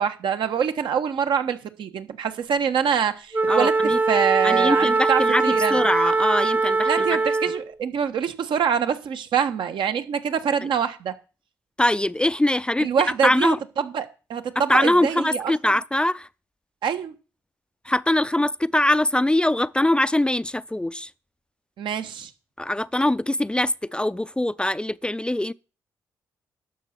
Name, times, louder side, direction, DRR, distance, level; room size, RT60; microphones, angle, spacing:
voice 1, 0.0-3.7 4.1-5.9 6.9-11.1 12.8-15.5 16.8-17.1 21.8-22.3, right 7 dB, 65° right, 1.4 m, -25 dB
Wind instrument woodwind instrument, 3.3-7.7, right 3 dB, 20° right, 0.8 m, -21 dB
voice 2, 3.5-4.0 4.4-7.1 11.8-12.9 13.2-13.6 14.6-16.3 17.8-21.1 22.6-25.5, left 1 dB, 10° left, 0.5 m, -22 dB
12.0 x 6.6 x 6.0 m
hypercardioid pair, 45°, 9 cm